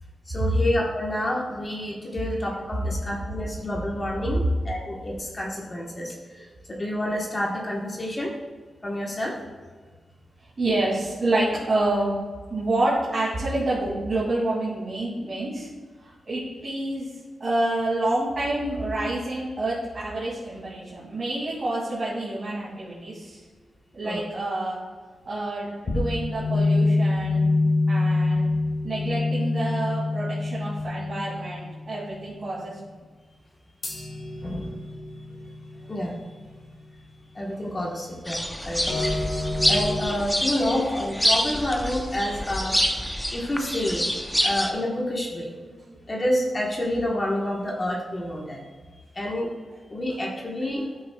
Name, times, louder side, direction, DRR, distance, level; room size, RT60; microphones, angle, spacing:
voice 1, 0.3-6.5 6.8-8.3 8.8-9.3 19.0-19.1 24.0-24.2 34.4-34.7 35.9-36.2 37.3-42.8 43.3-44.0 44.4-45.5 46.1-48.6 49.1-49.5 49.9-50.8, left 1 dB, 30° left, -2 dB, 1.3 m, -28 dB
voice 2, 10.6-12.1 12.5-15.7 16.0-17.1 17.4-23.4 23.9-24.8 25.3-27.6 27.9-28.5 28.8-32.8 45.9-46.0, right 2 dB, 45° right, -8 dB, 2.5 m, -28 dB
sound 1, 25.9-32.1 33.8-36.6 38.9-40.0, left 2 dB, 45° left, 1.9 m, -26 dB
sound 2, 38.3-44.7, equal, 5° left, 0.7 m, -26 dB
13.0 x 6.3 x 2.4 m, 1.4 s
wide cardioid pair, 110°, 0 cm